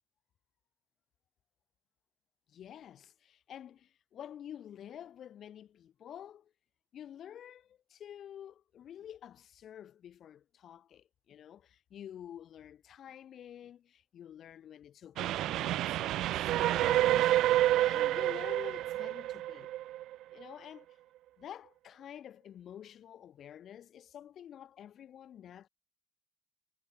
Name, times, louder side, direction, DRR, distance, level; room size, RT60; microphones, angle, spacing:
voice 1, 2.5-6.5 6.9-19.7 20.3-20.9 21.4-25.7, left 10 dB, 60° left, 7.5 m, -49 dB
Train, 15.2-20.4, right 14 dB, 75° right, 0.3 m, -29 dB
cardioid pair, 105°, 0 cm